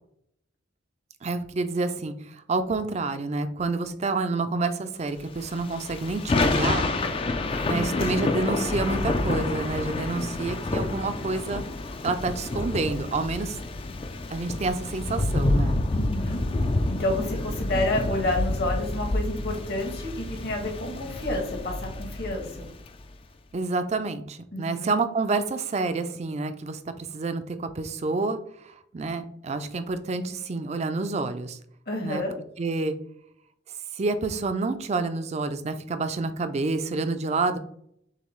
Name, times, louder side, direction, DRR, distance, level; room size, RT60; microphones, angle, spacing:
voice 1, 1.2-6.9 7.7-11.6 12.0-13.6 14.3-15.8 23.5-28.4 28.6-31.6 32.0-32.2 32.6-32.9 34.0-37.6, right 3 dB, 35° right, 10 dB, 0.4 m, -28 dB
Thunder / Rain, 5.4-22.9, left 2 dB, 30° left, 0.4 m, -28 dB
voice 2, 7.7-8.1 15.9-16.4 16.9-22.7 24.5-24.9 31.9-32.3, left 1 dB, 55° left, 2 dB, 1.2 m, -30 dB
6.6 x 2.3 x 3.1 m, 0.70 s
head